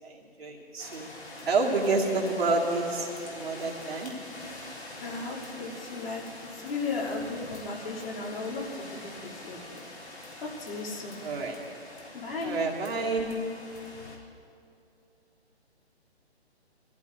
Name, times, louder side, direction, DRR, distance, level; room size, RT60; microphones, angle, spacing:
voice 1, 0.0-1.1 1.5-4.1 11.2-11.6 12.4-13.3, right 3 dB, 65° right, -2 dB, 2.2 m, -29 dB
sound 1, 0.8-14.2, left 2 dB, 85° left, 3.5 m, -45 dB
voice 2, 5.0-6.2 6.5-9.8 10.4-11.2 12.1-12.6, left 3 dB, 60° left, -4 dB, 3.2 m, -35 dB
22.5 x 14.5 x 2.7 m, 2.6 s
figure-of-eight pair, 145°, 33 cm